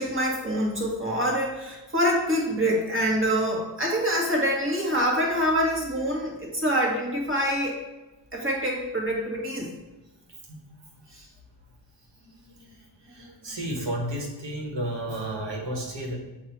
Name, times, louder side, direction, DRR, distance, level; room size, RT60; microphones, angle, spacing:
voice 1, 0.0-7.8 8.3-9.7, equal, 25° right, -2 dB, 1.7 m, -25 dB
voice 2, 12.3-12.7 13.0-16.2, right 1 dB, 60° right, -1 dB, 1.7 m, -32 dB
7.3 x 2.9 x 4.6 m, 1.1 s
cardioid pair, 90°, 48 cm